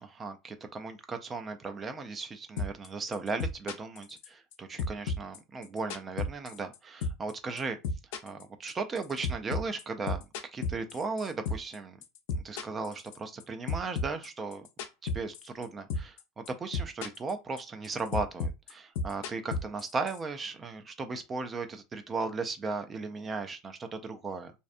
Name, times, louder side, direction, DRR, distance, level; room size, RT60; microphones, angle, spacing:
voice 1, 0.0-7.8 8.2-10.3 10.5-12.0 12.3-14.7 15.0-24.5, right 4 dB, 15° right, 0.3 m, -36 dB
sound 1, 2.6-2.9 3.1-4.5 4.8-6.8 7.0-7.3 7.6-11.8 12.0-13.4 13.7-15.6 15.9-16.2 16.5-17.3 17.6-20.2, left 3 dB, 70° left, 0.5 m, -33 dB
2.5 x 2.1 x 2.5 m
supercardioid pair, 160°, 0 cm